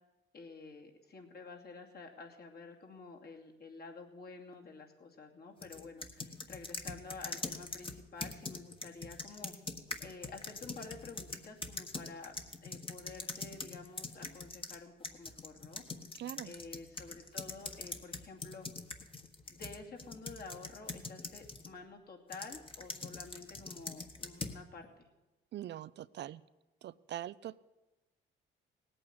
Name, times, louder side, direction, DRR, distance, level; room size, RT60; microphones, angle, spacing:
voice 1, 0.3-9.5 10.0-12.3 12.6-15.8 16.4-18.7 19.5-25.1, left 4 dB, 55° left, 1 dB, 2.6 m, -50 dB
sound 1, 5.6-14.8 15.0-21.7 22.3-24.6, left 3 dB, 25° left, 1.4 m, -43 dB
voice 2, 16.2-16.5 25.5-26.4 26.8-27.6, right 12 dB, 60° right, 16 dB, 0.5 m, -43 dB
18.0 x 8.8 x 8.3 m, 1.1 s
cardioid pair, 90°, 20 cm